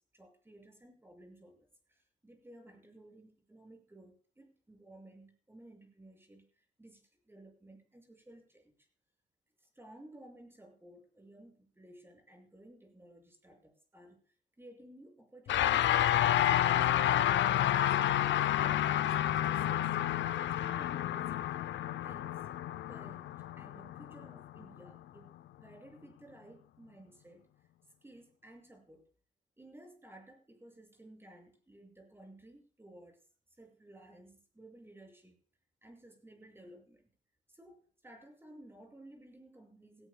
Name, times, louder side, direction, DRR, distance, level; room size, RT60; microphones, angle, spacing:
voice 1, 0.1-8.9 9.6-18.0 18.5-20.0 20.5-21.6 21.9-22.6 22.9-23.3 23.6-27.5 28.0-29.1 29.6-33.3 33.6-35.4 35.8-37.1 37.5-40.1, right 1 dB, 10° right, 2 dB, 6.5 m, -56 dB
sound 1, 15.5-25.0, left 12 dB, 70° left, 0.6 m, -30 dB
17.5 x 17.0 x 2.3 m, 0.41 s
cardioid pair, 90°, 20 cm